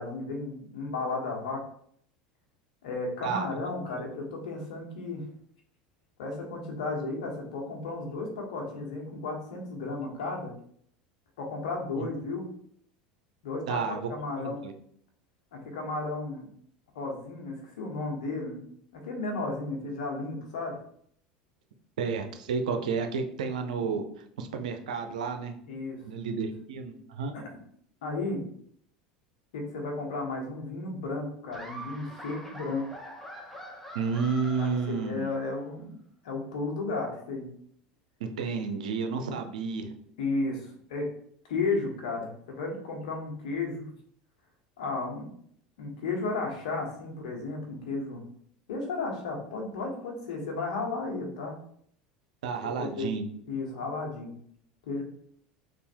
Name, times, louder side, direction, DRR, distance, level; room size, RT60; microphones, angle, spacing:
voice 1, 0.0-1.6 2.8-5.3 6.2-10.5 11.4-12.5 13.4-14.6 15.5-16.5 16.9-18.6 18.9-20.8 25.7-26.0 26.3-26.4 27.3-27.4 28.0-28.4 29.5-32.9 34.6-36.0 36.2-37.5 40.2-41.1 41.5-43.8 44.8-45.3 45.8-48.2 48.7-51.6 52.8-53.1 53.5-54.3 54.9-55.0, left 3 dB, 75° left, 1 dB, 1.2 m, -33 dB
voice 2, 13.7-14.0 14.4-14.7 22.0-24.0 24.4-25.5 26.0-27.4 33.9-35.4 38.2-39.9 52.4-53.3, right 5 dB, 80° right, 6 dB, 0.6 m, -31 dB
Laughter, 31.5-35.5, equal, 5° left, 1.0 m, -44 dB
3.4 x 2.5 x 4.3 m, 0.64 s
hypercardioid pair, 85°, 4 cm